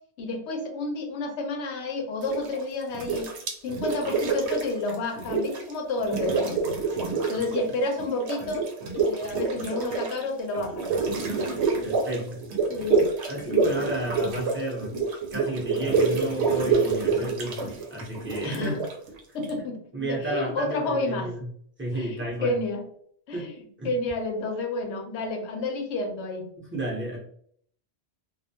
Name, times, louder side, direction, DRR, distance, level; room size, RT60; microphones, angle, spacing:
voice 1, 0.2-3.3 3.6-6.8 7.3-8.7 8.9-10.9 12.7-13.1 13.5-13.8 18.4-18.8 19.3-21.3 21.9-22.8 23.3-23.5 23.8-26.5, left 2 dB, 90° left, 3 dB, 0.9 m, -30 dB
sound 1, 2.2-2.6 2.9-5.7 6.0-7.7 8.0-19.5, right 4 dB, 85° right, 0.9 m, -27 dB
voice 2, 11.3-12.4 13.3-14.9 15.3-18.8 19.9-21.4 21.8-22.6 23.3-23.5 23.8-23.9 26.6-27.2, right 1 dB, 15° right, -3 dB, 0.6 m, -32 dB
2.3 x 2.2 x 2.6 m, 0.62 s
omnidirectional pair, 1.1 m